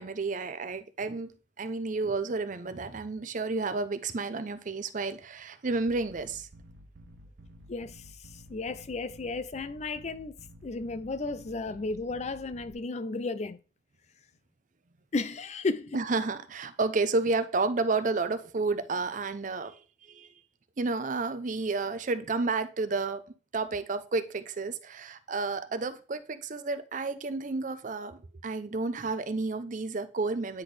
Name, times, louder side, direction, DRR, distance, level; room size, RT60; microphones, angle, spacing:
voice 1, 0.0-1.3 1.6-6.5 15.9-20.3 20.8-23.2 23.5-30.6, right 3 dB, 45° right, 0.6 m, -31 dB
sound 1, 5.9-12.7, right 1 dB, 80° right, 0.9 m, -52 dB
voice 2, 7.7-10.3 10.6-13.6 15.1-16.0, left 3 dB, 40° left, 0.5 m, -34 dB
9.6 x 4.1 x 3.3 m
head